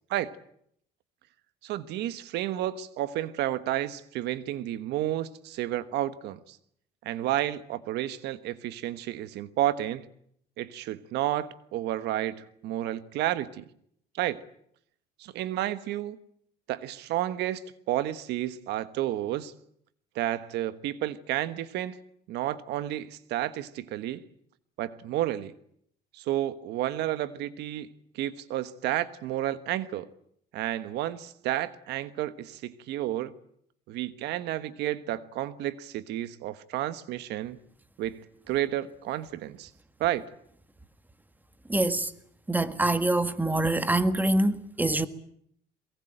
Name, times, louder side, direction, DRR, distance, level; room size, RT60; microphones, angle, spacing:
voice 1, 1.6-6.6 7.0-10.1 10.6-13.6 14.2-14.4 15.2-16.2 16.7-17.6 17.9-19.5 20.1-22.0 22.3-24.2 24.8-25.5 26.1-27.9 28.1-30.1 30.5-33.3 33.9-37.6 38.0-39.7 40.0-40.3, right 13 dB, 85° right, 1.3 m, -31 dB
voice 2, 41.7-42.1 42.5-45.1, right 2 dB, 10° right, 1.7 m, -25 dB
23.0 x 22.5 x 9.0 m
cardioid pair, 110°, 17 cm